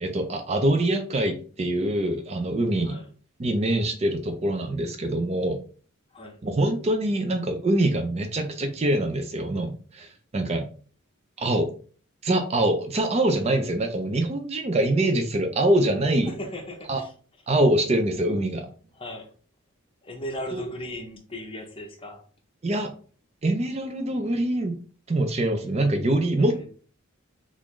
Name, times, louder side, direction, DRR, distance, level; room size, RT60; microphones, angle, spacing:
voice 1, 0.0-3.0 3.4-5.6 6.4-10.7 11.4-11.7 12.2-16.3 16.9-17.0 17.5-18.7 20.5-20.6 22.6-22.9 23.4-24.8 25.1-26.7, right 1 dB, 30° right, 0.4 m, -24 dB
voice 2, 16.3-17.1 18.9-19.3 20.0-22.2 26.4-26.7, equal, 25° left, 0.6 m, -37 dB
3.9 x 2.5 x 3.1 m
head